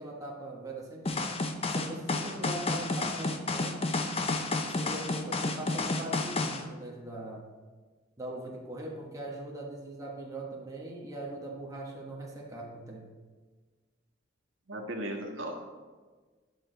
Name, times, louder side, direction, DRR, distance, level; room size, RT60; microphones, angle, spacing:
voice 1, 0.0-1.3 1.7-3.9 4.6-7.5 8.2-13.0, right 1 dB, 20° right, -2 dB, 1.4 m, -41 dB
sound 1, 1.1-6.6, left 3 dB, 30° left, 0.7 m, -31 dB
voice 2, 14.7-15.6, right 1 dB, 85° right, 0 dB, 1.4 m, -37 dB
10.5 x 6.1 x 4.0 m, 1.4 s
head